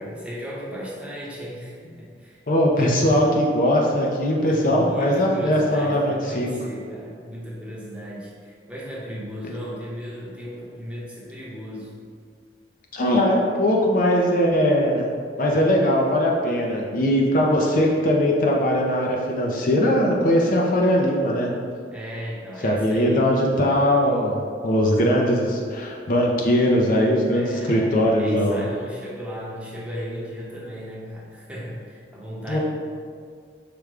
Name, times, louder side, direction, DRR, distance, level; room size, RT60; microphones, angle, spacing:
voice 1, 0.0-2.4 2.8-3.2 4.5-11.9 21.9-23.4 24.0-24.4 27.3-32.6, equal, 5° right, -6 dB, 0.9 m, -35 dB
voice 2, 2.5-6.5 12.9-15.1 15.4-21.5 22.6-24.4 24.6-28.7 32.5-32.6, equal, 50° left, -1 dB, 0.5 m, -20 dB
5.1 x 2.2 x 4.7 m, 2.1 s
head